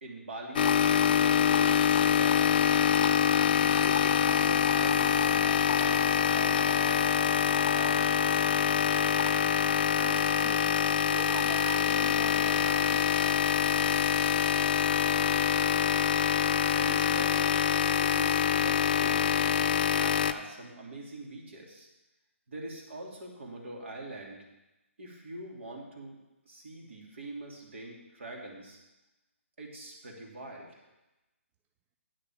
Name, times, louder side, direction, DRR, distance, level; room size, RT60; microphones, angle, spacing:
voice 1, 0.0-2.8 3.5-8.1 16.6-19.6 20.0-21.9 22.5-24.4 25.0-26.2 26.5-28.8 29.6-30.8, right 2 dB, 60° right, -1 dB, 3.0 m, -43 dB
sound 1, 0.6-20.3, left 8 dB, 40° left, 0.5 m, -25 dB
voice 2, 10.0-10.8 11.1-13.1, right 6 dB, 20° right, 5 dB, 0.5 m, -43 dB
9.1 x 6.8 x 7.3 m, 1.0 s
figure-of-eight pair, 140°, 7 cm